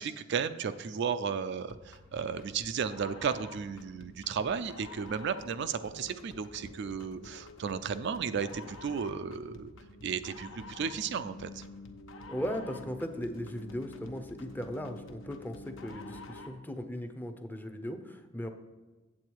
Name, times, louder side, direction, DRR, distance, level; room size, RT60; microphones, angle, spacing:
voice 1, 0.0-9.7 10.0-11.6, right 6 dB, 60° right, 11 dB, 0.4 m, -34 dB
sound 1, 1.7-16.6, left 2 dB, 70° left, 0.9 m, -49 dB
voice 2, 12.3-18.5, equal, 10° left, 7 dB, 0.6 m, -38 dB
8.5 x 7.7 x 4.6 m, 1.2 s
head